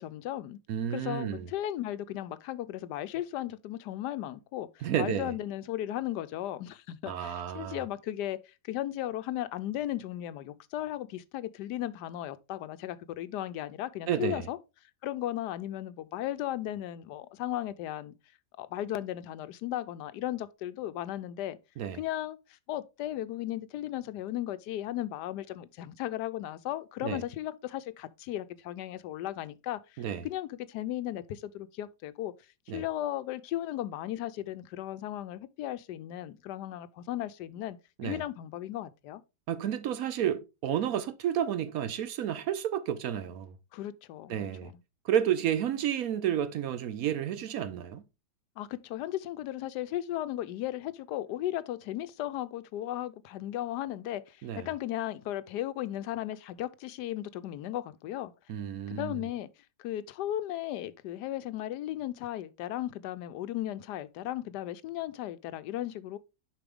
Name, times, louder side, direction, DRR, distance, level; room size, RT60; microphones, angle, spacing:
voice 1, 0.0-0.6 0.9-14.6 15.0-18.1 18.6-21.6 21.9-32.3 32.7-37.8 38.0-39.2 43.7-44.8 48.6-58.3 58.9-59.5 59.8-66.2, left 13 dB, 85° left, 1.2 m, -36 dB
voice 2, 0.7-1.5 4.8-5.3 7.1-7.8 14.1-14.5 21.8-22.0 27.0-27.2 30.0-30.2 32.7-32.8 38.0-38.2 39.5-43.5 44.3-44.7 45.0-48.0 54.4-54.7 58.5-59.2, right 10 dB, 70° right, 1.0 m, -31 dB
6.9 x 5.0 x 3.5 m
omnidirectional pair, 1.7 m